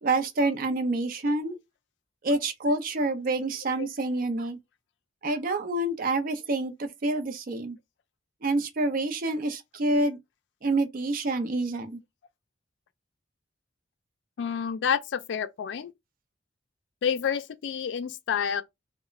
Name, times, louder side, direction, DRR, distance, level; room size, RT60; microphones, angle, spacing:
voice 1, 0.0-1.6 2.2-4.6 5.2-7.8 8.4-10.2 10.6-12.0, right 2 dB, 50° right, 0.4 m, -27 dB
voice 2, 14.4-15.9 17.0-18.6, left 7 dB, 65° left, 0.3 m, -29 dB
2.4 x 2.0 x 3.0 m
head